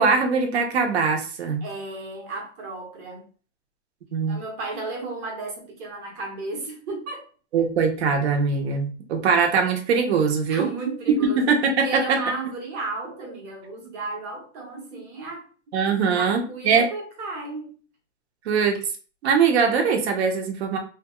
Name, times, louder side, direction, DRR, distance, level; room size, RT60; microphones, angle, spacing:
voice 1, 0.0-1.6 4.1-4.4 7.5-10.7 11.4-12.2 15.7-16.9 18.5-18.8 19.2-20.8, right 5 dB, 60° right, 0.8 m, -22 dB
voice 2, 1.6-3.3 4.3-7.3 10.5-15.5 16.1-17.7, right 3 dB, 25° right, 0.9 m, -33 dB
2.8 x 2.3 x 2.9 m
hypercardioid pair, 155°, 37 cm